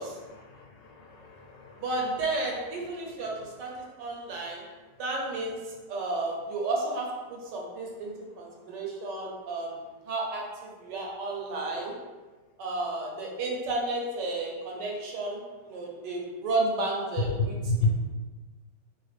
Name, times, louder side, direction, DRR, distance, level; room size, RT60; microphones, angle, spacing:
voice 1, 0.0-1.9 2.9-3.1 17.2-18.0, left 2 dB, 80° left, 1 dB, 1.2 m, -31 dB
voice 2, 1.8-3.7 4.0-4.6 5.0-5.6 5.9-11.9 12.6-17.6, right 2 dB, 75° right, -2 dB, 1.3 m, -32 dB
3.2 x 2.4 x 3.1 m, 1.3 s
omnidirectional pair, 1.9 m